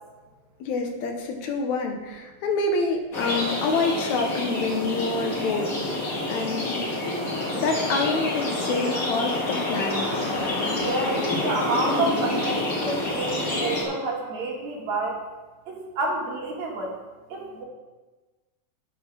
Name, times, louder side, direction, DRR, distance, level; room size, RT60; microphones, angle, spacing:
voice 1, 0.6-6.9 7.5-10.0 10.3-10.5, left 3 dB, 70° left, 3 dB, 2.2 m, -27 dB
sound 1, 3.1-13.8, left 2 dB, 40° left, 1.4 m, -27 dB
voice 2, 10.7-15.2 15.7-16.9 17.3-17.6, right 3 dB, 65° right, -2 dB, 2.7 m, -29 dB
9.4 x 4.6 x 6.3 m, 1.2 s
omnidirectional pair, 3.7 m